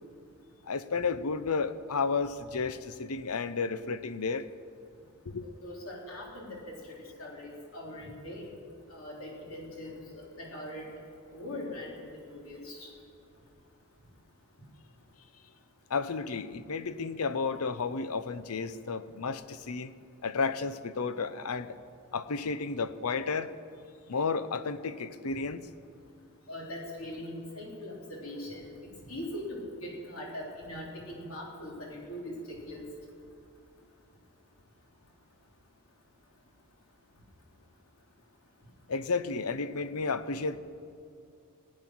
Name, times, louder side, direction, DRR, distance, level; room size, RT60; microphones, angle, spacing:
voice 1, 0.6-4.5 5.3-5.5 15.9-19.9 20.2-21.8 22.1-23.5 24.1-25.6 38.9-40.6, left 4 dB, 85° left, 13 dB, 0.7 m, -32 dB
voice 2, 5.4-8.5 8.9-10.9 11.3-12.0 12.3-12.9 26.5-28.7 29.1-32.9, left 1 dB, 70° left, -2 dB, 3.5 m, -41 dB
19.0 x 8.9 x 6.1 m, 2.5 s
head